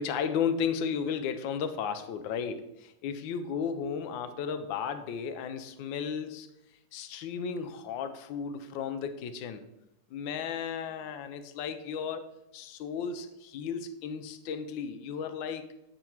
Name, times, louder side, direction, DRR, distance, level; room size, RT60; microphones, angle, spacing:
voice 1, 0.0-6.5 6.9-9.6 10.1-12.2 12.5-15.7, left 7 dB, 70° left, 9 dB, 1.3 m, -34 dB
8.3 x 5.2 x 4.4 m, 0.91 s
omnidirectional pair, 2.3 m